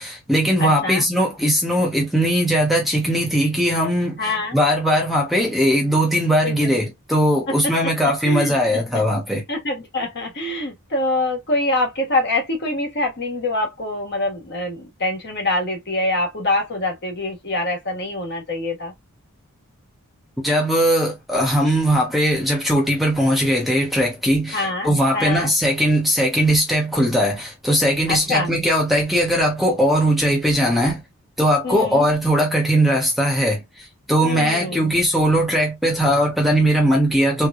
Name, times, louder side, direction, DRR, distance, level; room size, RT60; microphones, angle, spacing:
voice 1, 0.0-9.4 20.4-31.0 31.4-37.5, equal, ahead, 1.0 m, -19 dB
voice 2, 0.6-1.0 4.2-4.6 6.4-6.7 7.5-7.9 8.2-9.0 9.5-18.9 24.5-25.5 28.1-28.5 31.6-32.1 34.2-34.8, left 2 dB, 50° left, 1.6 m, -25 dB
3.6 x 3.3 x 2.4 m
head